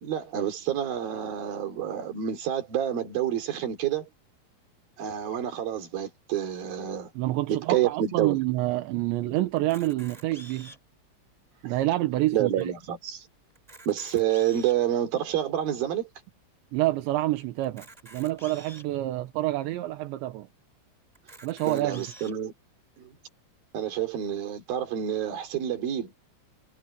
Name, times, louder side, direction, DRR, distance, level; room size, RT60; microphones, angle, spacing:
voice 1, 0.0-4.1 5.0-7.1 7.5-8.4 11.6-11.7 12.3-13.3 13.9-16.1 21.6-22.5 23.0-23.1 23.7-26.1, right 10 dB, 55° right, 4.6 m, -28 dB
voice 2, 7.2-10.7 11.6-12.5 16.7-17.9 18.1-20.5 21.4-22.1, right 16 dB, 80° right, 3.3 m, -27 dB
Camera, 9.6-11.0 11.6-11.7 11.9-12.1 12.6-12.7 13.5-14.9 15.5-15.6 17.6-18.9 19.6-19.7 20.0-20.1 21.1-22.3, right 1 dB, 10° right, 4.6 m, -48 dB
omnidirectional pair, 5.3 m